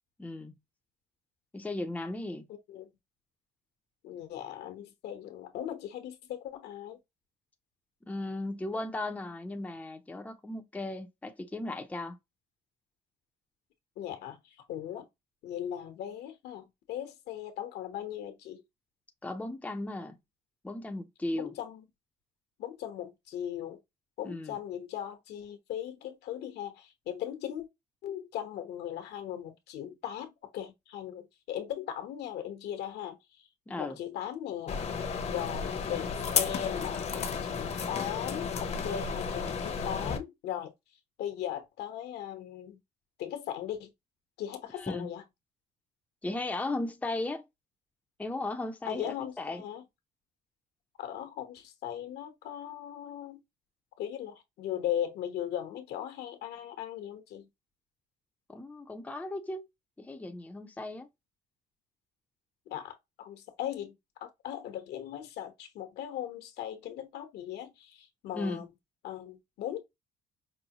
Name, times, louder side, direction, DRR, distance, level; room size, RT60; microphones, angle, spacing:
voice 1, 0.2-0.5 1.5-2.4 8.1-12.2 19.2-20.2 20.6-21.5 24.2-24.6 33.7-34.0 44.7-45.1 46.2-47.4 48.2-49.6 58.5-59.7 60.0-61.1 68.3-68.6, left 2 dB, 10° left, 0.6 m, -36 dB
voice 2, 2.5-2.9 4.0-7.0 14.0-15.1 15.4-18.6 21.3-21.8 22.6-23.8 24.2-27.7 28.0-33.2 33.8-34.8 35.2-40.7 41.2-42.8 43.2-43.9 44.4-45.2 48.8-49.8 51.0-53.4 54.0-57.5 62.7-68.6 69.0-69.8, left 10 dB, 75° left, 1.1 m, -38 dB
sound 1, 34.7-40.2, left 6 dB, 40° left, 0.8 m, -33 dB
5.4 x 2.2 x 2.9 m
cardioid pair, 110°, 17 cm